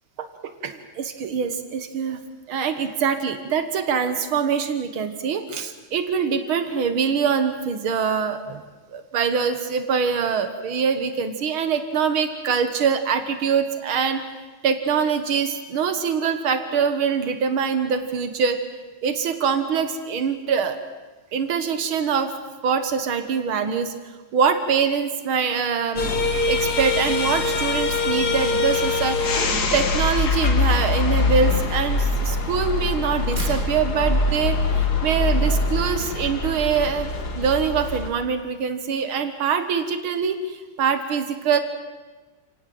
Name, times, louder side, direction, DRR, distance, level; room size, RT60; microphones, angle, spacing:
voice 1, 0.2-2.2 2.5-8.6 8.9-14.2 14.6-18.6 19.0-20.8 21.3-22.3 22.6-23.9 24.3-26.1 26.5-37.1 37.4-41.6, right 6 dB, 90° right, 9 dB, 2.3 m, -24 dB
sound 1, 26.0-38.1, left 3 dB, 50° left, 2.3 m, -23 dB
sound 2, 32.4-35.1, equal, 30° right, 7.7 m, -42 dB
29.0 x 18.0 x 7.8 m, 1.3 s
omnidirectional pair, 2.2 m